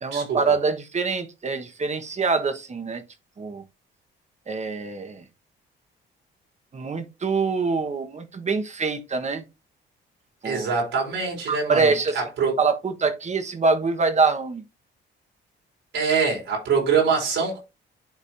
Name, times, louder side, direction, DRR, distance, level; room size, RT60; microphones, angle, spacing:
voice 1, 0.0-3.0 3.4-3.6 4.5-5.2 6.7-9.4 10.4-10.7 11.5-12.2 12.6-14.6, right 4 dB, 35° right, 1.4 m, -24 dB
voice 2, 10.4-12.5 15.9-17.6, right 5 dB, 80° right, 4.6 m, -24 dB
11.5 x 4.2 x 2.7 m
cardioid pair, 90°, 20 cm